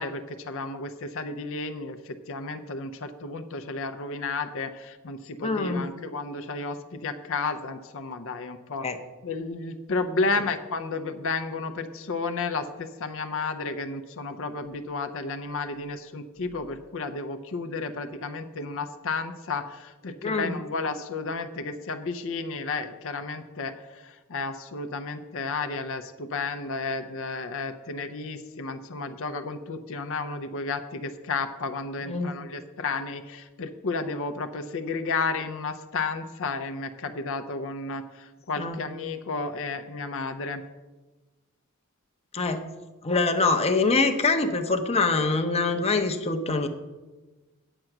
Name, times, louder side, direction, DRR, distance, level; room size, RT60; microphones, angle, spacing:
voice 1, 0.0-8.9 9.2-40.6, left 3 dB, 65° left, 8 dB, 0.6 m, -32 dB
voice 2, 5.4-5.9 8.8-9.0 20.2-20.6 32.1-32.3 38.6-38.8 42.3-42.6 43.0-46.7, left 3 dB, 30° left, 6 dB, 0.7 m, -24 dB
9.0 x 7.7 x 5.9 m, 1.2 s
head